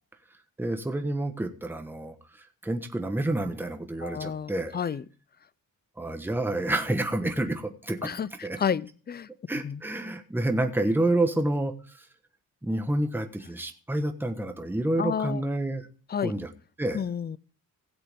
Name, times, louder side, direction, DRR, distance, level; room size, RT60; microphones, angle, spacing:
voice 1, 0.6-2.2 2.6-4.8 6.0-8.2 8.4-8.6 9.5-11.7 12.6-15.9 16.2-16.5 16.8-17.0, right 1 dB, 5° right, 1.2 m, -28 dB
voice 2, 4.0-5.0 8.0-8.3 8.6-9.3 9.6-9.8 15.0-15.4 16.1-16.3 16.9-17.4, left 7 dB, 25° left, 0.4 m, -30 dB
17.0 x 7.8 x 3.5 m
cardioid pair, 120°, 37 cm